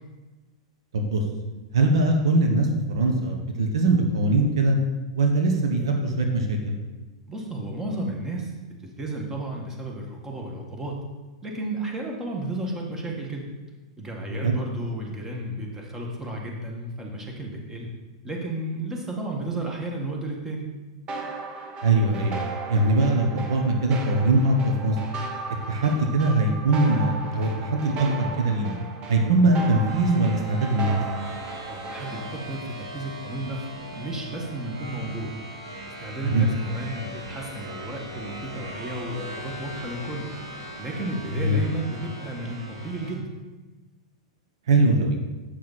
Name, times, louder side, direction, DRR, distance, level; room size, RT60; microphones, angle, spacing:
voice 1, 1.7-4.8 5.2-6.8 14.3-14.5 21.8-22.4 22.7-25.0 25.7-28.8 29.1-31.0 36.2-36.5 41.3-41.6 44.7-45.2, right 2 dB, 75° right, 3 dB, 1.2 m, -22 dB
voice 2, 7.3-8.5 8.8-11.0 11.4-13.5 14.0-17.9 18.2-20.7 31.7-33.7 33.9-35.3 36.0-40.3 40.8-43.3, right 1 dB, 15° right, 0 dB, 1.8 m, -33 dB
sound 1, 21.1-32.4, right 3 dB, 35° right, 1.1 m, -36 dB
sound 2, 29.9-43.1, equal, 90° right, 2.2 m, -39 dB
8.1 x 6.4 x 4.2 m, 1.2 s
hypercardioid pair, 110°, 3 cm